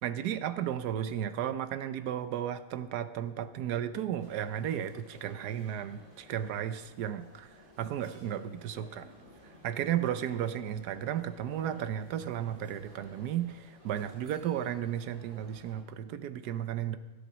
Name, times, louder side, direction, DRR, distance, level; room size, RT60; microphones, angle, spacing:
voice 1, 0.0-7.5 7.8-9.1 9.6-17.0, right 10 dB, 75° right, 12 dB, 1.2 m, -34 dB
sound 1, 4.2-15.8, equal, 55° right, 3.2 m, -56 dB
13.5 x 8.0 x 6.1 m, 1.2 s
omnidirectional pair, 1.7 m